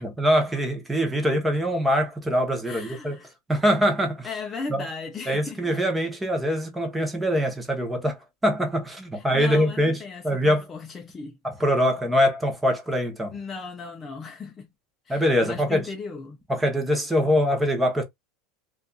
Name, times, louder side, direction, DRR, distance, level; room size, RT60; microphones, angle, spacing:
voice 1, 0.0-3.2 3.5-4.3 4.7-4.8 5.3-10.0 10.2-10.6 11.4-13.3 15.1-15.8 16.5-18.0, equal, 5° right, 0.7 m, -23 dB
voice 2, 2.6-3.3 4.2-5.8 9.1-11.4 13.3-14.7 15.1-16.4, left 4 dB, 20° left, 0.4 m, -37 dB
2.6 x 2.3 x 2.3 m
supercardioid pair, 150°, 0 cm